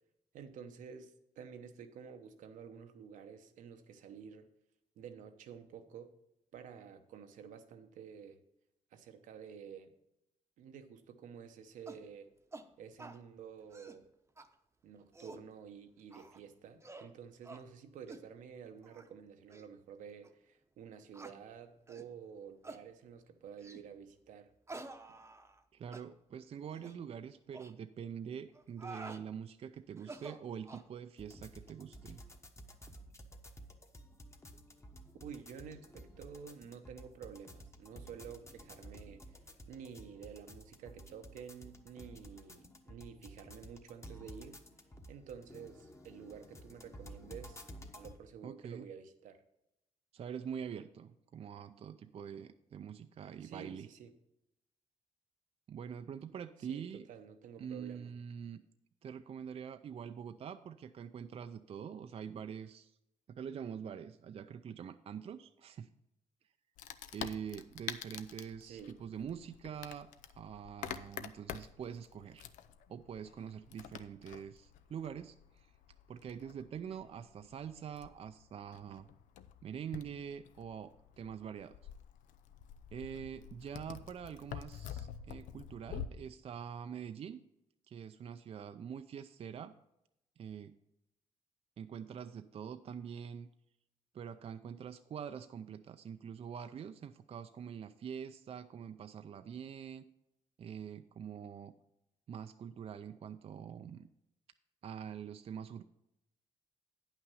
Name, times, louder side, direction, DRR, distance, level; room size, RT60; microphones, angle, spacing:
voice 1, 0.3-4.5 5.0-6.1 6.5-8.4 8.9-9.9 10.6-12.3 12.8-14.1 14.8-24.5 35.2-39.4 39.7-44.6 45.1-47.6 47.9-49.4 53.4-54.1 56.7-58.1 68.6-69.0, right 7 dB, 80° right, 0.8 m, -50 dB
sound 1, 11.9-12.1 12.5-12.7 13.0-13.2 13.6-14.0 14.4-14.5 15.0-15.5 16.1-16.4 16.8-17.1 17.4-17.6 18.1-18.3 18.8-19.1 19.5-19.6 20.2-20.3 21.1-21.4 21.9-22.1 22.6-22.8 23.6-23.9 24.7-25.6 25.9-26.1 26.7-27.0 27.5-27.7 28.5-29.2 30.0-30.9, right 2 dB, 20° right, 0.8 m, -49 dB
voice 2, 25.7-32.2 48.4-48.9 50.1-53.9 55.7-57.1 57.6-58.6 59.0-63.0 63.3-65.9 67.1-72.5 72.9-75.7 76.1-79.1 79.6-81.8 82.9-87.4 87.9-89.7 90.4-90.8 91.8-93.5 94.1-100.1 100.6-101.7 102.3-104.1 104.8-105.8, right 8 dB, 50° right, 0.4 m, -45 dB
sound 2, 31.2-48.2, equal, 20° left, 1.2 m, -53 dB
Wood, 66.8-86.1, left 9 dB, 85° left, 0.5 m, -48 dB
9.3 x 5.9 x 5.5 m
cardioid pair, 70°, 13 cm